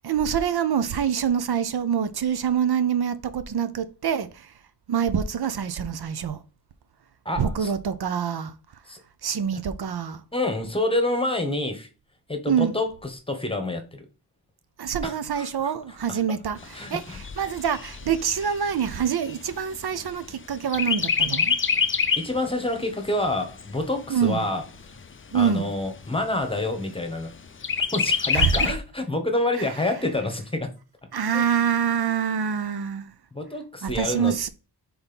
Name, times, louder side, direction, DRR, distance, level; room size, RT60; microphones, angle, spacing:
voice 1, 0.0-4.5 4.9-6.4 7.4-8.5 9.2-10.2 12.5-12.7 14.8-21.6 24.1-24.4 25.3-25.7 28.3-28.7 29.6-29.7 31.1-33.1 33.8-34.5, right 8 dB, 65° right, 0.7 m, -25 dB
voice 2, 7.2-7.7 8.9-9.0 10.3-11.9 12.3-14.1 15.0-15.7 16.1-16.2 16.7-17.2 22.2-24.6 25.3-27.3 27.9-30.7 31.3-31.4 33.3-34.4, left 2 dB, 15° left, 1.1 m, -28 dB
Chirp tweet, 16.6-20.3 20.7-22.4 22.8-22.9 23.3-24.3 24.9-25.0 25.3-25.4 25.9-26.4 27.6-28.7, left 6 dB, 30° left, 0.5 m, -26 dB
4.3 x 4.3 x 5.2 m
wide cardioid pair, 165°, 41 cm